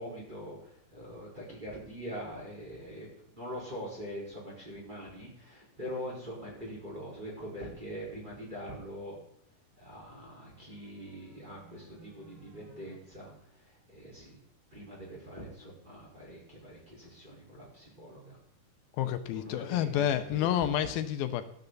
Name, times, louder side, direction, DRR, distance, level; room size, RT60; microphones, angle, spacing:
voice 1, 0.0-9.2 9.8-14.4 14.7-18.4 19.3-20.9, equal, 10° right, -5 dB, 4.2 m, -43 dB
sound 1, 9.6-12.9, right 3 dB, 45° right, 7.3 m, -58 dB
voice 2, 19.0-21.4, left 10 dB, 80° left, 10 dB, 2.5 m, -29 dB
13.0 x 12.5 x 4.0 m, 0.72 s
omnidirectional pair, 4.4 m